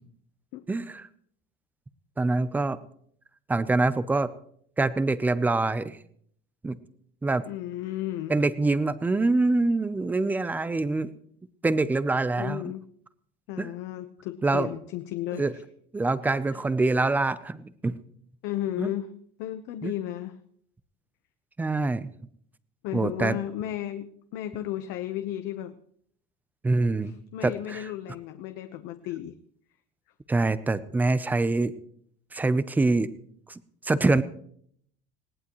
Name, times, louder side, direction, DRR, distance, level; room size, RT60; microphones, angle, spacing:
voice 1, 0.7-1.1 2.2-2.8 3.5-4.3 4.8-6.0 6.6-6.8 7.2-7.4 8.3-11.1 11.6-12.6 13.6-13.7 14.4-14.7 15.3-15.5 15.9-17.9 18.8-18.9 19.8-19.9 21.6-22.1 22.9-23.4 26.6-27.1 27.4-27.9 30.3-31.7 32.3-33.1 33.5-33.6 33.8-34.2, right 3 dB, 10° right, 15 dB, 0.6 m, -25 dB
voice 2, 7.5-8.4 12.4-12.8 13.5-15.5 16.2-16.6 18.4-19.1 19.4-20.4 22.8-25.8 27.0-29.4, left 13 dB, 55° left, 8 dB, 1.0 m, -34 dB
20.0 x 18.0 x 3.1 m, 0.64 s
cardioid pair, 170°, 21 cm